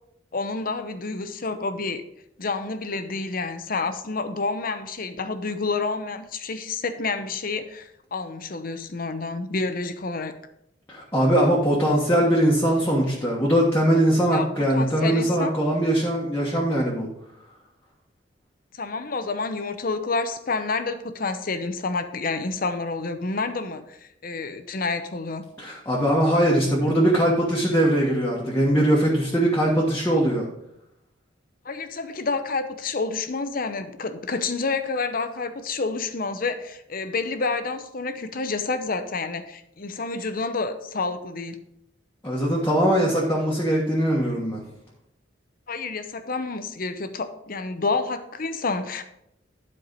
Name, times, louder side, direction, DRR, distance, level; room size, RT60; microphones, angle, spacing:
voice 1, 0.3-2.0 2.4-10.3 14.3-15.5 18.8-24.0 24.2-25.4 30.1-30.2 31.6-41.6 45.7-49.0, left 3 dB, 50° left, 9 dB, 0.8 m, -29 dB
voice 2, 10.9-17.1 25.6-30.4 42.2-44.6, right 1 dB, 15° left, -5 dB, 1.4 m, -21 dB
11.0 x 4.7 x 5.2 m, 0.78 s
head